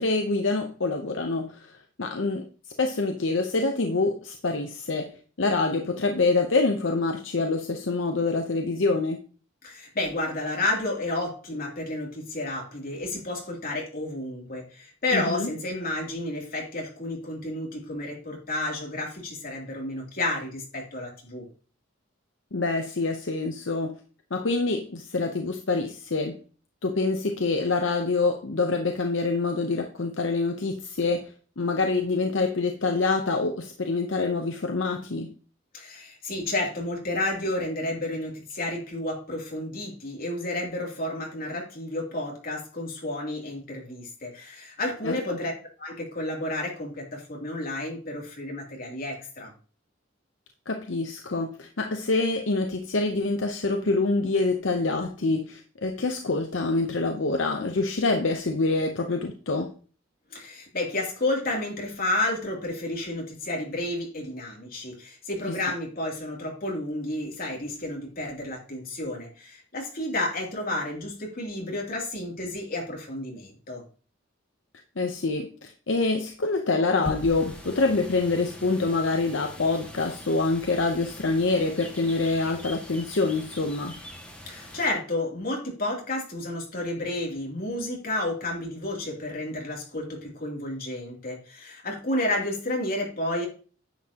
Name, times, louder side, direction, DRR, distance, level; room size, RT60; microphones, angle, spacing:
voice 1, 0.0-1.7 2.0-2.4 2.8-9.2 15.1-15.5 22.5-24.0 24.3-26.4 26.8-35.3 45.0-45.4 50.7-59.7 65.6-65.7 75.0-83.9, left 3 dB, 75° left, 4 dB, 0.9 m, -26 dB
voice 2, 9.6-21.4 35.7-45.5 45.8-49.5 60.3-73.8 84.5-93.5, left 1 dB, 50° left, -1 dB, 3.0 m, -31 dB
sound 1, 77.0-84.9, left 1 dB, 5° left, 1.9 m, -42 dB
10.0 x 7.5 x 3.0 m, 0.39 s
head